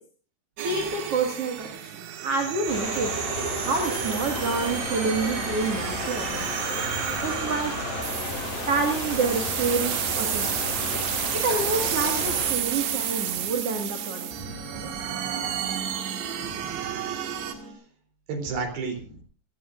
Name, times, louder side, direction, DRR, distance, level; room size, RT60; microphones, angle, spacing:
voice 1, 0.6-3.2 3.6-6.7 7.2-7.7 8.7-10.8 11.3-14.3 14.7-14.9, right 3 dB, 45° right, 3 dB, 2.3 m, -28 dB
sound 1, 0.6-17.5, right 10 dB, 85° right, 4.1 m, -31 dB
sound 2, 2.7-12.5, left 2 dB, 55° left, 7.6 m, -33 dB
sound 3, 4.2-17.7, right 1 dB, 30° right, 6.5 m, -44 dB
voice 2, 14.3-15.2 16.3-16.9 17.5-17.6 18.3-19.2, right 4 dB, 60° right, 4 dB, 5.4 m, -35 dB
26.5 x 18.0 x 2.6 m, 0.40 s
omnidirectional pair, 5.0 m